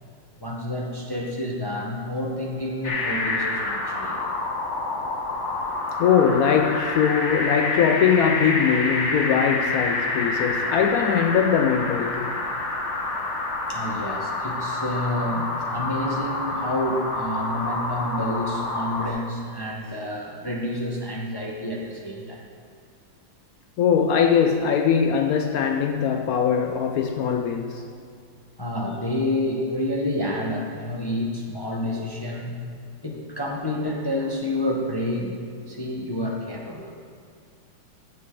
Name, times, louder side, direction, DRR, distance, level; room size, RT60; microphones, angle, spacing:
voice 1, 0.4-4.4 13.7-22.4 28.6-32.6 33.0-35.4 35.7-36.9, left 1 dB, 25° left, -2 dB, 0.6 m, -29 dB
sound 1, 2.8-19.1, left 2 dB, 45° left, 1.1 m, -28 dB
voice 2, 6.0-12.4 23.8-27.8, left 7 dB, 85° left, 5 dB, 0.7 m, -21 dB
15.5 x 7.6 x 3.8 m, 2.3 s
omnidirectional pair, 2.2 m